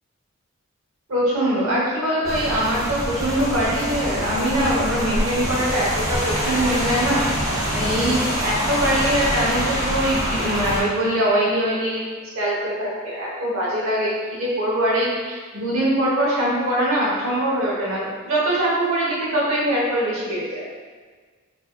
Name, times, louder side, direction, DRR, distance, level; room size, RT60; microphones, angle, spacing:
voice 1, 1.1-7.2 7.7-12.1 12.3-20.7, right 1 dB, 70° right, -5 dB, 1.0 m, -22 dB
Rain, 2.2-10.8, equal, 15° right, 0.6 m, -25 dB
3.8 x 2.8 x 2.2 m, 1.5 s
head